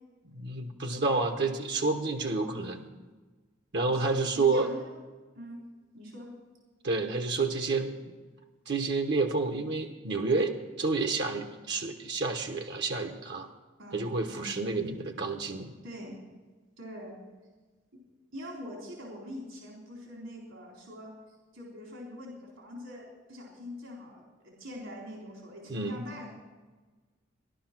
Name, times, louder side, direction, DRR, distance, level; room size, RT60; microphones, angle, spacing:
voice 1, 0.3-2.8 3.7-4.7 6.8-7.9 8.7-10.5 10.8-13.5 13.9-15.7 25.7-26.0, right 3 dB, 60° right, 5 dB, 1.1 m, -29 dB
voice 2, 3.9-4.9 5.3-5.6 5.9-6.3 13.8-14.5 15.8-16.2 16.8-17.2 17.9-18.0 18.3-21.1 21.5-26.3, equal, 75° right, -2 dB, 3.9 m, -44 dB
15.5 x 11.5 x 6.0 m, 1.3 s
head